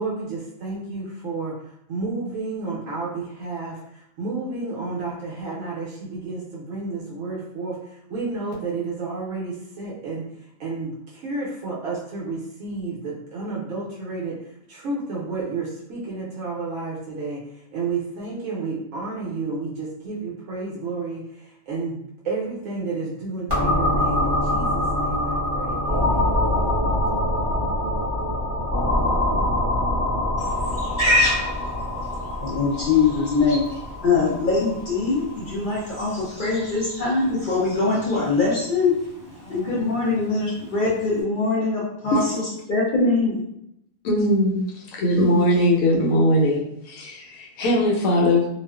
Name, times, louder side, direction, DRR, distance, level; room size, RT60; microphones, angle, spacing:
voice 1, 0.0-1.6 1.9-14.4 14.7-22.0 22.2-26.4, right 3 dB, 75° right, -5 dB, 0.9 m, -31 dB
sound 1, 23.5-37.1, left 1 dB, 20° right, 0.9 m, -24 dB
Livestock farm animals working animals, 30.4-41.2, left 1 dB, 25° left, 1.1 m, -31 dB
voice 2, 32.4-33.6 34.0-38.9 39.5-43.4, left 4 dB, 65° left, -5 dB, 0.5 m, -22 dB
voice 3, 44.0-44.6 44.9-48.5, left 1 dB, 85° left, -1 dB, 1.1 m, -20 dB
2.4 x 2.3 x 2.2 m, 0.78 s
omnidirectional pair, 1.4 m